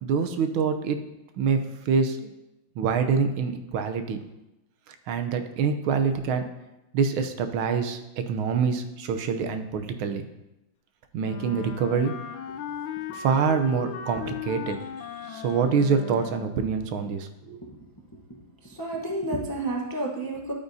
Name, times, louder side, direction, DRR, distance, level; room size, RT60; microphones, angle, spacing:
voice 1, 0.0-1.0 1.4-2.3 2.8-4.2 4.9-6.4 6.9-10.3 11.1-12.1 13.1-14.8 15.3-17.6, right 5 dB, 90° right, 8 dB, 1.6 m, -26 dB
Wind instrument woodwind instrument, 11.2-16.7, left 8 dB, 75° left, 1.3 m, -37 dB
voice 2, 14.6-15.5 17.6-17.8 18.3-20.5, right 2 dB, 20° left, -1 dB, 0.5 m, -33 dB
10.5 x 8.9 x 2.7 m, 0.95 s
omnidirectional pair, 2.2 m